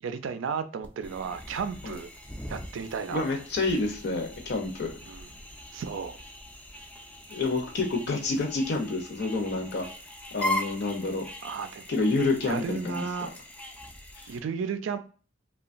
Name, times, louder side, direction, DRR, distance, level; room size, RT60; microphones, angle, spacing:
voice 1, 0.0-2.1 2.5-3.2 3.6-3.7 5.1-5.3 5.7-6.2 11.4-12.0 12.4-13.3 14.3-15.0, right 6 dB, 80° right, 0.4 m, -33 dB
sound 1, 0.8-14.4, left 1 dB, 5° left, 0.3 m, -40 dB
voice 2, 3.1-4.9 7.3-9.9 10.3-11.3 11.9-13.3 14.2-14.3, left 3 dB, 60° left, 0.6 m, -28 dB
2.9 x 2.2 x 2.4 m
head